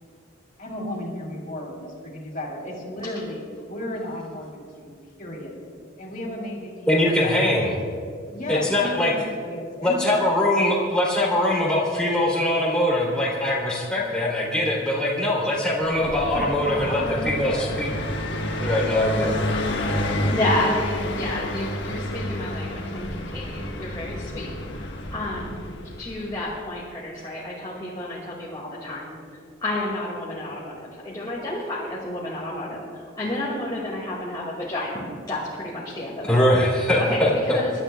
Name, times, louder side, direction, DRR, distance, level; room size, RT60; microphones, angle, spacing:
voice 1, 0.6-4.9 5.2-5.5 6.0-7.8 8.3-10.4 13.9-14.1 16.1-17.8 18.7-20.4, left 1 dB, 45° left, -2 dB, 3.2 m, -35 dB
voice 2, 6.9-7.7 8.5-9.1 9.8-17.9 18.6-19.4 20.0-20.3 36.2-37.6, left 1 dB, 5° left, -6 dB, 3.0 m, -22 dB
Car passing by, 15.9-26.5, left 1 dB, 65° left, 1.3 m, -30 dB
voice 3, 20.3-25.6 26.0-29.1 29.6-36.3 37.1-37.7, left 1 dB, 20° left, -6 dB, 2.1 m, -30 dB
27.0 x 12.5 x 2.3 m, 2.2 s
head